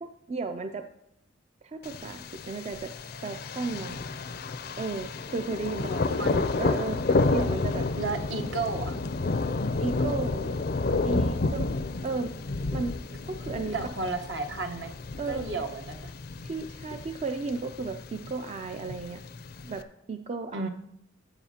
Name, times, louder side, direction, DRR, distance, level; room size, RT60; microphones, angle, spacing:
voice 1, 0.0-0.9 1.6-2.9 3.2-4.0 4.8-7.9 9.8-10.5 11.0-11.7 12.0-12.3 12.7-13.0 13.2-13.8 15.2-15.5 16.4-19.2 19.6-19.8 20.1-20.7, right 3 dB, 35° right, 7 dB, 0.4 m, -34 dB
Thunder, 1.8-19.8, left 3 dB, 50° left, 0.5 m, -31 dB
voice 2, 5.9-6.5 8.0-9.0 13.7-14.9 15.3-16.1 20.5-20.7, right 3 dB, 65° right, 5 dB, 1.1 m, -33 dB
14.5 x 7.3 x 2.8 m, 0.78 s
head